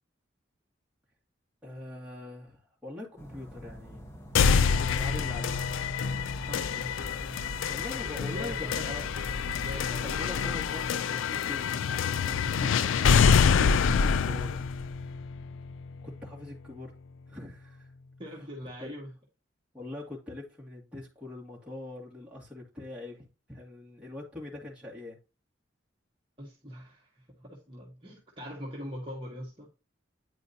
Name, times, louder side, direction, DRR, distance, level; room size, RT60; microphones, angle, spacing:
voice 1, 1.6-4.1 4.8-5.6 7.7-9.0 10.0-13.4 16.0-16.9 17.3-17.9 18.8-18.9 19.7-25.2, left 2 dB, 5° right, 2.2 m, -43 dB
sound 1, 3.2-9.8, equal, 15° left, 1.1 m, -45 dB
sound 2, 4.3-16.3, left 6 dB, 90° left, 0.4 m, -26 dB
voice 2, 6.5-6.9 8.0-9.0 9.5-10.5 13.5-14.6 18.2-19.1 26.4-29.7, equal, 25° right, 1.6 m, -42 dB
9.3 x 4.9 x 2.7 m
head